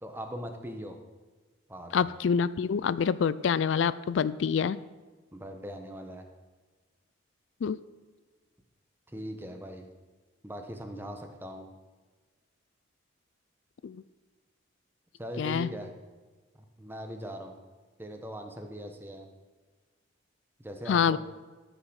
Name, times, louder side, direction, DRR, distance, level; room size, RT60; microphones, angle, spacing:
voice 1, 0.0-1.0 1.7-2.1 5.3-6.2 9.1-9.9 10.4-11.7 15.2-15.9 16.8-17.6 18.0-19.3 20.6-21.2, equal, 10° right, 5 dB, 1.1 m, -40 dB
voice 2, 1.9-4.8 7.6-7.8 13.8-14.0 15.4-15.7 20.9-21.2, left 6 dB, 75° left, 17 dB, 0.4 m, -26 dB
14.0 x 6.2 x 6.3 m, 1.4 s
head